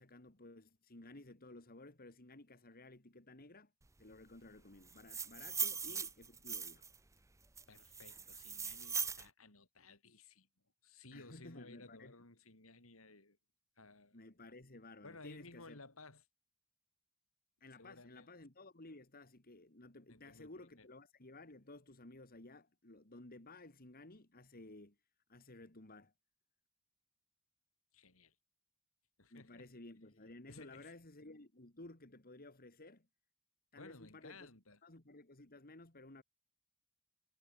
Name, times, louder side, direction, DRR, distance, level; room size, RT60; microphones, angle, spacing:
voice 1, 0.0-3.7 4.0-6.9 11.1-12.1 14.1-15.8 17.6-25.0 25.3-26.1 29.3-33.1 33.7-34.5 34.8-36.2, left 2 dB, 45° left, 2.7 m, -55 dB
sound 1, 4.9-7.0 7.6-9.3, right 6 dB, 15° right, 0.8 m, -40 dB
voice 2, 7.7-10.5 10.8-13.4 13.8-14.2 15.0-16.2 17.8-18.3 20.1-20.9 27.9-28.3 29.2-29.7 30.5-30.9 33.8-34.8, left 3 dB, 75° left, 4.4 m, -57 dB
head